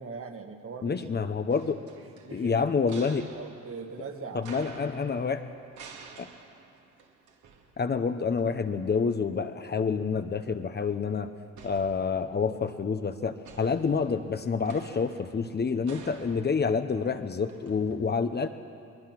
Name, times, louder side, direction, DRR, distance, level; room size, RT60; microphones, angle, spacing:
voice 1, 0.0-1.0 2.2-2.6 3.3-4.6, right 5 dB, 45° right, 4 dB, 2.0 m, -40 dB
voice 2, 0.8-1.8 2.3-3.3 4.3-5.5 6.2-6.3 7.8-11.3 11.6-18.5, left 5 dB, 35° left, 8 dB, 1.0 m, -28 dB
sound 1, 1.5-8.1 8.4-8.5 11.6-12.6 13.4-18.0, right 5 dB, 70° right, 2.4 m, -50 dB
21.5 x 21.0 x 6.1 m, 2.5 s
cardioid pair, 90°, 30 cm